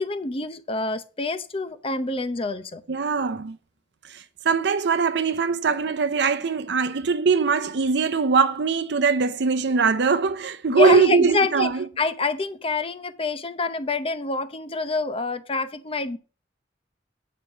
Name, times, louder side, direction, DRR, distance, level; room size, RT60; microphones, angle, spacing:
voice 1, 0.0-2.8 10.7-11.7 12.0-16.2, left 3 dB, 30° left, 0.7 m, -26 dB
voice 2, 2.9-3.6 4.1-11.8, right 5 dB, 65° right, 0.6 m, -21 dB
8.8 x 5.1 x 7.2 m
head